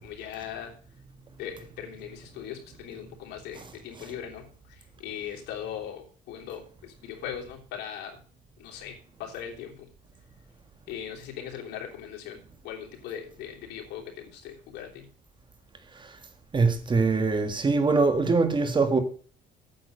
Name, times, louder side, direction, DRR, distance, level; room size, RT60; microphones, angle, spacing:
voice 1, 0.0-0.7 1.4-8.2 8.6-9.9 10.9-12.4 12.6-15.1, left 9 dB, 85° left, 3.3 m, -39 dB
voice 2, 16.5-19.0, right 4 dB, 30° right, 1.9 m, -23 dB
9.1 x 7.7 x 6.6 m
cardioid pair, 110°, 17 cm